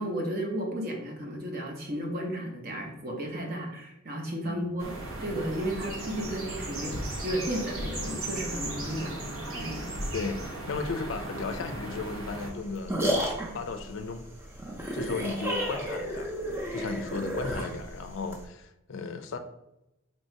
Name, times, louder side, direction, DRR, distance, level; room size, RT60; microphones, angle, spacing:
voice 1, 0.0-4.9 5.2-10.0, right 1 dB, 45° right, 1 dB, 0.8 m, -34 dB
sound 1, 4.8-12.5, right 1 dB, 90° right, 1.1 m, -36 dB
voice 2, 10.1-13.1 13.5-14.2 14.9-16.3 16.7-19.4, left 4 dB, 65° left, 8 dB, 0.4 m, -35 dB
sound 2, 12.4-18.4, equal, 10° right, 0.6 m, -32 dB
3.0 x 2.7 x 4.4 m, 0.89 s
head